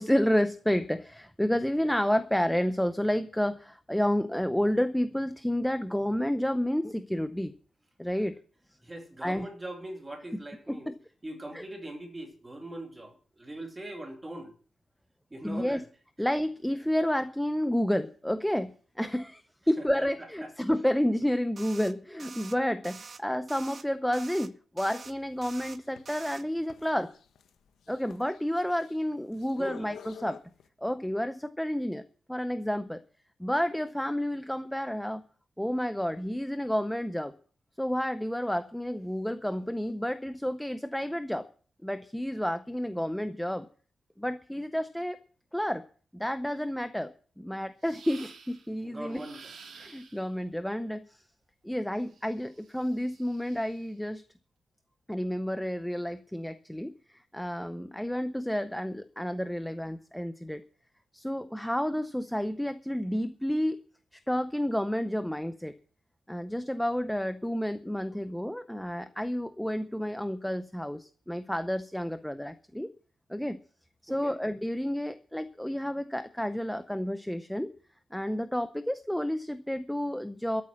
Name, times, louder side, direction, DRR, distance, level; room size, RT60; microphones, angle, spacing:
voice 1, 0.0-7.5 8.0-8.4 9.2-9.5 10.7-10.9 11.5-11.6 15.4-15.8 16.2-27.1 27.9-30.4 30.8-32.0 32.3-33.0 33.4-35.2 35.6-37.3 37.8-41.5 41.8-43.7 44.2-45.2 45.5-45.8 46.1-49.2 49.8-51.2 51.6-54.2 55.1-60.6 61.1-63.8 64.1-65.7 66.3-72.9 73.3-73.6 74.0-77.7 78.1-80.6, equal, ahead, 0.6 m, -30 dB
voice 2, 8.8-10.9 11.2-14.5 15.3-15.8 19.8-20.5 29.5-29.9 48.8-49.5 74.1-74.3, right 1 dB, 15° right, 2.6 m, -41 dB
sound 1, 21.6-21.9 22.2-22.5 22.8-23.2 23.5-23.8 24.1-24.5 24.8-25.1 25.4-25.8 26.1-26.4, right 5 dB, 35° right, 0.8 m, -46 dB
sound 2, 25.0-30.7, left 8 dB, 80° left, 1.3 m, -51 dB
sound 3, 47.8-48.7 49.1-50.3 52.0-53.9, right 5 dB, 50° right, 2.6 m, -52 dB
13.5 x 8.5 x 7.3 m
wide cardioid pair, 170°, 0 cm